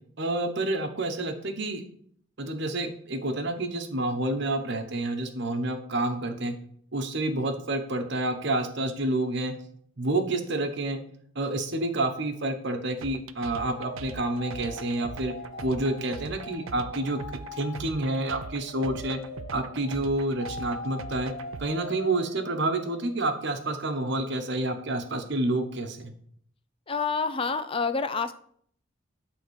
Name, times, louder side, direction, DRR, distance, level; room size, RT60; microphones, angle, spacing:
voice 1, 0.2-1.8 2.4-6.5 6.9-9.5 10.0-11.0 11.3-15.3 15.6-17.2 17.5-19.2 19.5-21.3 21.6-26.1, right 2 dB, 55° right, 6 dB, 1.1 m, -29 dB
sound 1, 13.0-21.7, right 4 dB, 70° right, 0.5 m, -41 dB
sound 2, 13.5-23.3, left 2 dB, 45° left, 1.9 m, -42 dB
voice 2, 26.9-28.3, left 4 dB, 25° left, 11 dB, 0.5 m, -28 dB
11.0 x 3.8 x 6.3 m, 0.64 s
head